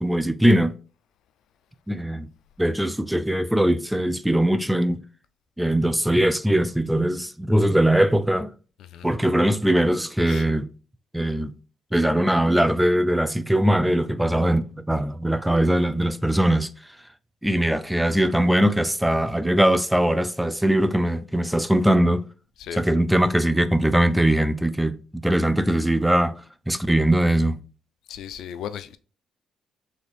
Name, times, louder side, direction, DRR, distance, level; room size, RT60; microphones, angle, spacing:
voice 1, 0.0-0.7 1.9-2.3 2.6-5.0 5.6-8.5 9.0-10.7 11.1-11.5 11.9-16.7 17.4-22.2 22.7-25.0 25.2-26.3 26.7-27.6, right 1 dB, 5° right, 0.5 m, -21 dB
voice 2, 28.1-29.0, left 9 dB, 80° left, 0.4 m, -36 dB
4.2 x 3.4 x 3.3 m
cardioid pair, 90°, 0 cm